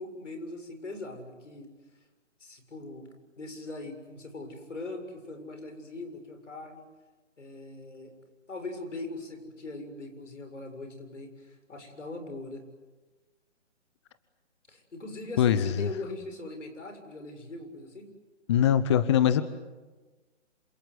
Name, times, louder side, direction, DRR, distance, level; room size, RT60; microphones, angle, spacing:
voice 1, 0.0-1.7 2.4-3.1 3.4-6.8 7.4-8.1 8.5-12.6 14.7-18.1, left 2 dB, 85° left, 6 dB, 7.2 m, -41 dB
voice 2, 15.4-15.9 18.5-19.4, left 9 dB, 25° left, 14 dB, 0.8 m, -22 dB
27.0 x 26.0 x 8.0 m, 1.3 s
hypercardioid pair, 155°, 36 cm